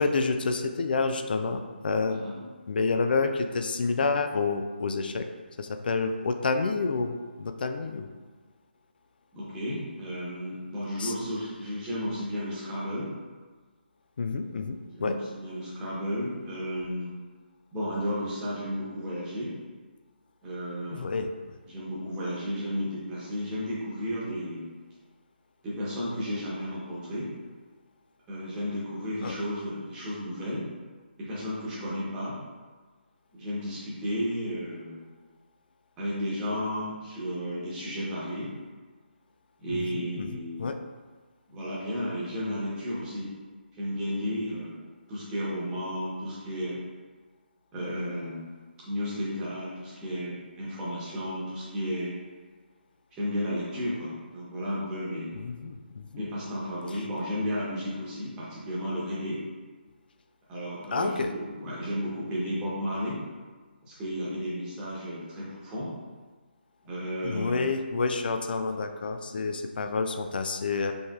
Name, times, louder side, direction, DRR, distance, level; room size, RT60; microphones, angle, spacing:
voice 1, 0.0-2.2 2.7-5.3 5.6-8.1 11.0-11.1 14.2-15.2 20.9-21.3 29.2-29.4 39.7-40.8 55.3-56.3 60.9-61.3 67.2-70.9, left 4 dB, 60° left, 7 dB, 0.4 m, -29 dB
voice 2, 2.1-2.4 9.3-13.1 14.9-17.2 17.7-19.5 20.4-21.0 21.7-24.7 25.6-27.3 28.3-30.6 31.2-32.4 33.3-35.0 36.0-38.5 39.6-40.7 41.5-43.3 43.8-46.8 47.7-48.4 48.8-52.2 53.1-55.4 56.2-59.4 60.5-63.2 63.8-65.9 66.8-67.7, equal, 15° right, -8 dB, 1.1 m, -33 dB
4.9 x 3.2 x 2.4 m, 1.4 s
figure-of-eight pair, 150°, 6 cm